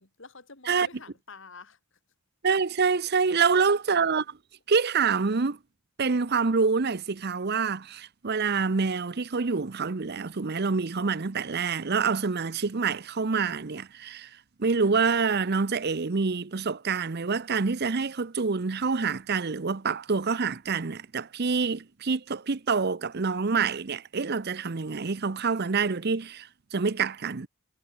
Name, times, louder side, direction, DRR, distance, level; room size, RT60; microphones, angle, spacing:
voice 1, 0.0-1.8 3.3-3.7, left 4 dB, 60° left, 3.4 m, -48 dB
voice 2, 2.4-4.4 4.7-5.6 6.0-14.3 14.6-27.5, right 5 dB, 45° right, 0.7 m, -26 dB
head